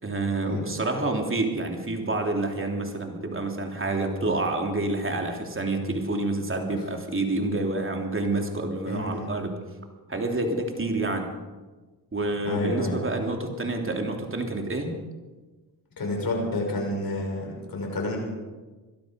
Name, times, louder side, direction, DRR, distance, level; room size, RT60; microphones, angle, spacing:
voice 1, 0.0-9.6 10.1-11.3 12.1-14.9, right 2 dB, 30° right, 3 dB, 3.3 m, -28 dB
voice 2, 8.9-9.3 12.4-13.0 16.0-18.2, left 2 dB, 55° left, 0 dB, 6.0 m, -29 dB
21.5 x 12.5 x 5.3 m, 1.3 s
cardioid pair, 65°, 41 cm